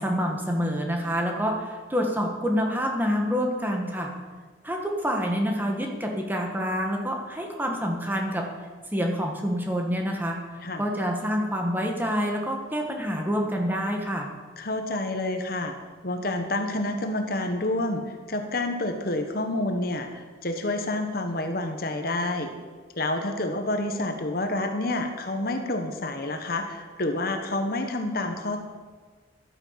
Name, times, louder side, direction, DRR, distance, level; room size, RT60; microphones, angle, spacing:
voice 1, 0.0-4.1 4.6-8.5 8.9-10.4 10.8-14.3, equal, 10° right, 1 dB, 1.6 m, -27 dB
voice 2, 14.6-15.7 16.0-18.0 18.3-22.5 23.0-28.6, left 2 dB, 50° left, 5 dB, 1.2 m, -28 dB
12.0 x 9.7 x 7.5 m, 1.4 s
head